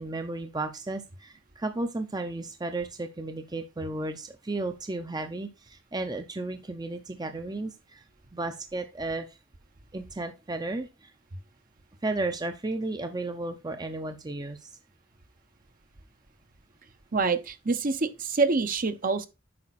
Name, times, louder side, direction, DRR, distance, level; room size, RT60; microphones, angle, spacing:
voice 1, 0.0-8.0 8.3-9.4 9.9-11.1 12.0-14.7, right 2 dB, 20° right, 0.7 m, -34 dB
voice 2, 17.1-19.3, right 4 dB, 45° right, 0.9 m, -26 dB
8.7 x 5.4 x 4.1 m
head